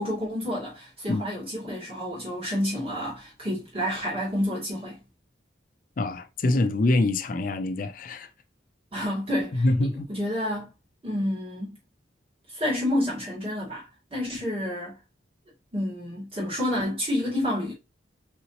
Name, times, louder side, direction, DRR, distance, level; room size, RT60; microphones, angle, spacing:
voice 1, 0.0-5.0 8.9-10.7 11.0-11.8 12.5-15.0 15.7-17.7, left 1 dB, 30° right, 2.3 m, -29 dB
voice 2, 6.0-8.3 8.9-9.1 9.5-10.1, left 2 dB, 45° left, 0.4 m, -25 dB
4.0 x 3.9 x 2.9 m
head